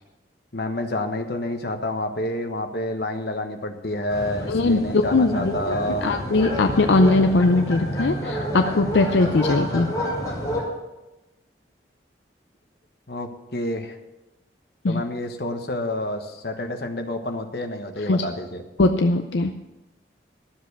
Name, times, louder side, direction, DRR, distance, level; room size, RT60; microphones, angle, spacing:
voice 1, 0.5-6.0 13.1-14.0 14.9-18.6, left 1 dB, 60° left, 5 dB, 1.3 m, -28 dB
sound 1, 4.1-10.6, equal, 20° left, 4.9 m, -29 dB
voice 2, 4.5-9.9 14.8-15.0 18.1-18.2 18.8-19.5, left 2 dB, 85° left, 6 dB, 0.6 m, -20 dB
12.5 x 7.4 x 6.8 m, 1.0 s
head